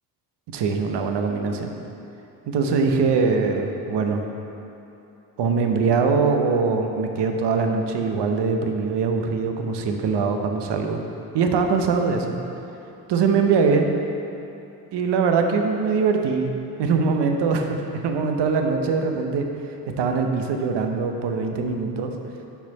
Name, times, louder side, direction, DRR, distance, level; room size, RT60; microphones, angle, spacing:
voice 1, 0.5-1.7 2.5-4.2 5.4-11.0 11.3-12.4 13.1-13.9 14.9-16.5 16.8-19.5 20.0-22.1, right 5 dB, 60° right, 4 dB, 0.8 m, -22 dB
5.8 x 4.4 x 5.4 m, 2.9 s
supercardioid pair, 60°, 48 cm